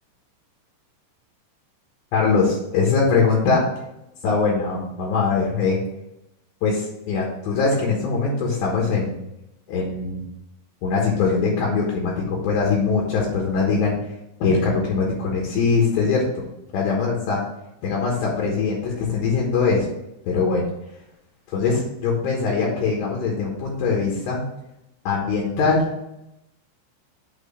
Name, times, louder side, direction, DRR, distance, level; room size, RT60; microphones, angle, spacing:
voice 1, 2.1-3.7 4.2-5.8 6.6-9.2 9.7-10.2 10.8-14.0 14.4-16.2 16.7-17.4 17.8-19.9 20.2-20.6 21.5-24.4 25.0-25.9, left 4 dB, 70° left, -2 dB, 3.3 m, -22 dB
8.6 x 3.1 x 5.6 m, 0.87 s
omnidirectional pair, 5.4 m